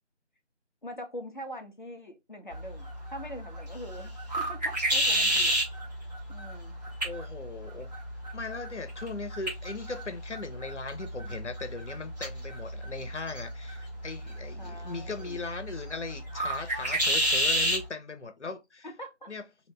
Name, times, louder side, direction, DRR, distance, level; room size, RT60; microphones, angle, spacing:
voice 1, 0.8-4.1 4.4-5.5 6.3-6.7 14.6-15.4 18.8-19.3, equal, 45° left, 0.8 m, -43 dB
sound 1, 2.5-17.9, equal, 35° right, 1.2 m, -32 dB
voice 2, 7.0-7.9 8.3-18.9 19.3-19.4, left 3 dB, 75° left, 0.9 m, -39 dB
3.3 x 2.8 x 3.1 m
figure-of-eight pair, 170°, 35 cm